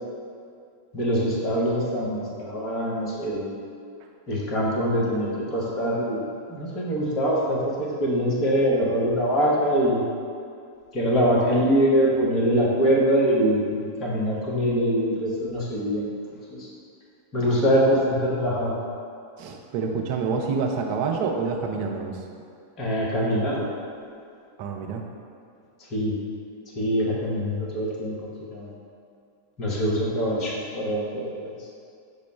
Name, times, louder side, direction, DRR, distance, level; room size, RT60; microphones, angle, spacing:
voice 1, 0.9-3.5 4.3-6.2 6.5-10.0 10.9-16.1 16.5-16.7 17.3-18.7 22.8-23.7 25.9-26.2 26.7-28.7 29.6-31.5, equal, 35° left, -4 dB, 0.9 m, -23 dB
voice 2, 19.4-22.2 24.6-25.0, right 5 dB, 45° right, 2 dB, 0.5 m, -27 dB
5.2 x 2.1 x 4.2 m, 2.4 s
figure-of-eight pair, 90°, 0 cm